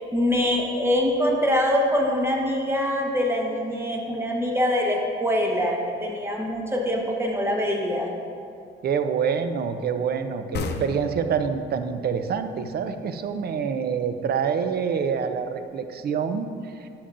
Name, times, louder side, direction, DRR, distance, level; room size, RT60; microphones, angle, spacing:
voice 1, 0.0-8.1, left 1 dB, 10° right, 0 dB, 1.2 m, -24 dB
voice 2, 8.8-16.9, right 6 dB, 55° right, 9 dB, 0.5 m, -26 dB
sound 1, 10.5-13.9, left 3 dB, 55° left, 0.7 m, -35 dB
10.5 x 7.0 x 2.5 m, 2.4 s
cardioid pair, 90°, 20 cm